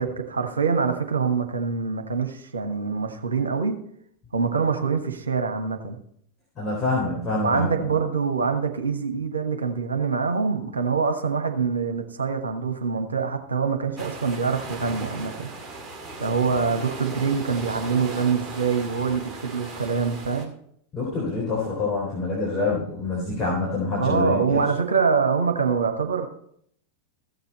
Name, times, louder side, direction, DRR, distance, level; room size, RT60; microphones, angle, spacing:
voice 1, 0.0-3.8 4.3-6.0 7.4-15.5 16.2-20.5 24.0-26.3, right 5 dB, 75° right, 5 dB, 1.3 m, -25 dB
voice 2, 6.6-7.8 20.9-24.6, left 3 dB, 20° left, -6 dB, 3.9 m, -26 dB
sound 1, 14.0-20.5, right 2 dB, 20° right, 2.3 m, -37 dB
15.0 x 7.0 x 4.2 m, 0.66 s
figure-of-eight pair, 90°, 0 cm